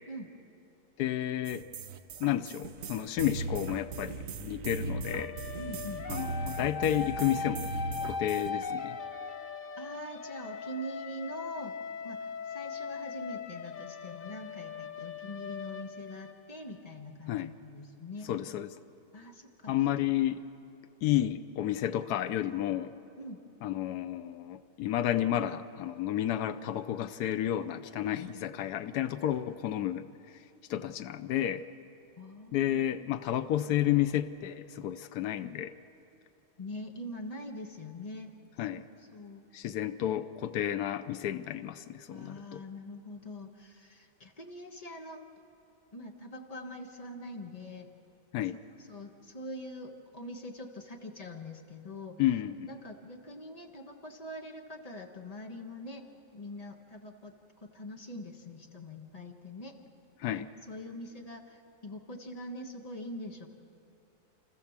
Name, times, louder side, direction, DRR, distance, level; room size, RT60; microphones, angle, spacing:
voice 1, 1.0-1.7 2.2-5.4 6.1-7.7 8.1-9.0 17.3-17.5 18.3-18.7 19.7-20.4 21.0-22.9 23.6-30.1 30.7-31.7 32.5-35.7 38.6-38.8 39.5-42.6 48.3-48.6 52.2-52.7 60.2-60.5, left 12 dB, 80° left, 9 dB, 1.2 m, -31 dB
sound 1, 1.4-8.5, right 4 dB, 60° right, 1.1 m, -38 dB
sound 2, 5.0-16.8, left 5 dB, 50° left, 0.6 m, -39 dB
voice 2, 5.6-6.1 9.8-11.8 12.0-18.3 19.1-19.7 23.2-23.4 32.2-33.5 36.6-38.3 38.7-38.8 39.1-39.4 42.1-45.2 45.9-47.9 48.9-52.2 52.6-56.1 56.3-59.8 60.3-63.5, left 1 dB, 25° left, 3 dB, 1.5 m, -44 dB
29.5 x 14.5 x 7.3 m, 2.7 s
omnidirectional pair, 1.7 m